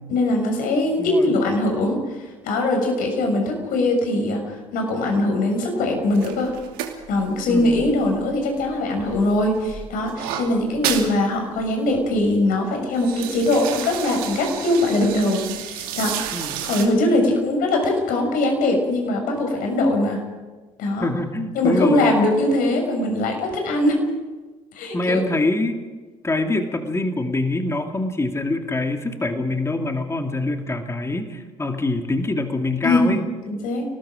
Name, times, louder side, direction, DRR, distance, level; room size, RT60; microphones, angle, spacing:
voice 1, 0.1-2.0 2.4-6.5 7.1-16.3 16.6-20.2 20.8-21.1 21.5-24.0 24.7-25.2 32.8-33.8, left 1 dB, 55° left, 3 dB, 6.5 m, -21 dB
voice 2, 1.0-1.3 7.5-7.8 16.3-16.6 21.0-22.1 24.9-25.8 26.2-33.2, left 2 dB, 15° left, 5 dB, 2.6 m, -24 dB
sound 1, 6.1-8.6 9.0-11.1 11.5-11.6 11.9-12.3 12.7-16.8, right 10 dB, 60° right, 2.7 m, -32 dB
29.5 x 19.5 x 5.1 m, 1.3 s
figure-of-eight pair, 55°, 17 cm